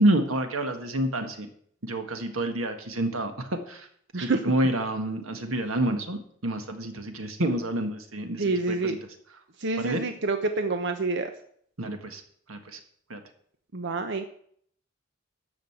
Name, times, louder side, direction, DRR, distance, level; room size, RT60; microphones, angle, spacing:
voice 1, 0.0-1.5 1.8-3.9 4.2-9.0 9.8-10.0 11.8-12.2 12.5-12.8 13.1-13.2, right 1 dB, 90° right, 6 dB, 1.7 m, -28 dB
voice 2, 8.4-9.0 9.6-11.3 13.7-14.2, right 3 dB, 60° right, 7 dB, 0.9 m, -27 dB
13.0 x 5.3 x 8.0 m, 0.63 s
head